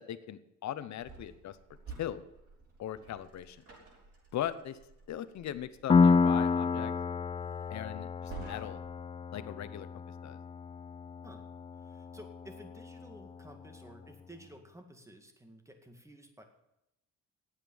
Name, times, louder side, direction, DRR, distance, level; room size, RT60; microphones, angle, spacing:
voice 1, 0.0-1.6 2.0-2.2 2.8-3.6 4.3-4.8 5.1-6.9 7.7-8.8 9.3-9.9 10.2-10.4, left 11 dB, 65° left, 14 dB, 0.9 m, -39 dB
sound 1, 1.0-9.1, right 5 dB, 50° right, 5.9 m, -52 dB
Piano, 5.9-13.3, left 5 dB, 20° left, 0.4 m, -30 dB
voice 2, 11.7-16.4, equal, 10° right, 6 dB, 2.0 m, -53 dB
9.1 x 8.2 x 8.8 m, 0.87 s
cardioid pair, 90°, 30 cm